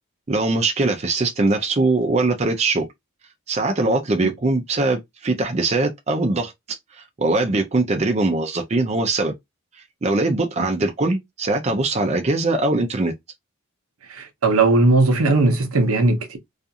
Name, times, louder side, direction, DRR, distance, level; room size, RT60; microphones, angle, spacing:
voice 1, 0.3-2.9 3.5-6.5 7.2-9.3 10.0-13.1, right 2 dB, 30° right, 0.5 m, -21 dB
voice 2, 14.1-16.4, right 2 dB, 80° right, 0.7 m, -18 dB
2.4 x 2.4 x 2.7 m
head